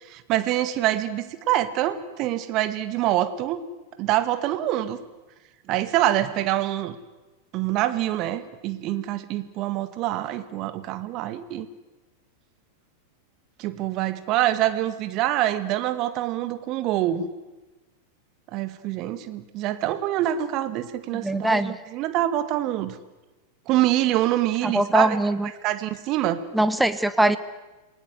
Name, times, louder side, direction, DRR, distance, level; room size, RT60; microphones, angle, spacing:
voice 1, 0.1-3.6 4.0-5.0 5.7-7.0 7.5-11.7 13.6-17.3 18.5-23.0 23.7-25.2 25.6-26.4, right 13 dB, 40° right, 12 dB, 1.8 m, -25 dB
voice 2, 21.1-21.8 24.6-25.5 26.5-27.4, right 1 dB, 5° right, 12 dB, 1.2 m, -22 dB
28.0 x 19.0 x 8.0 m, 1.1 s
figure-of-eight pair, 90°, 0 cm